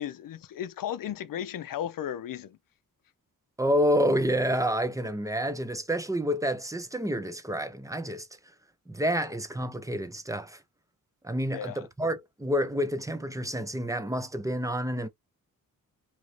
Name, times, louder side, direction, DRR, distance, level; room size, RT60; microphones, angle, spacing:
voice 1, 0.0-2.6 11.5-11.9, left 10 dB, 65° left, 0.5 m, -35 dB
voice 2, 3.6-8.3 8.9-10.6 11.2-15.1, equal, 10° right, 0.6 m, -28 dB
3.0 x 2.6 x 3.1 m
cardioid pair, 75°, 36 cm